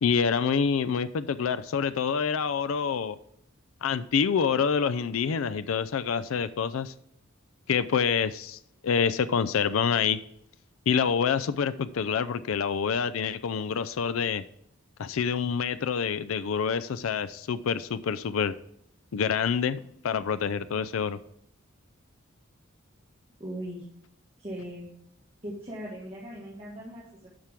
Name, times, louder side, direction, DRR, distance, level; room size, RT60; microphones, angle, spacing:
voice 1, 0.0-3.2 3.8-6.9 7.7-10.2 10.9-14.4 15.0-18.5 19.1-21.2, left 6 dB, 80° left, 14 dB, 0.4 m, -27 dB
voice 2, 23.4-23.8 24.4-24.9 25.4-27.3, equal, 30° right, -6 dB, 1.7 m, -39 dB
11.0 x 6.0 x 3.6 m, 0.73 s
head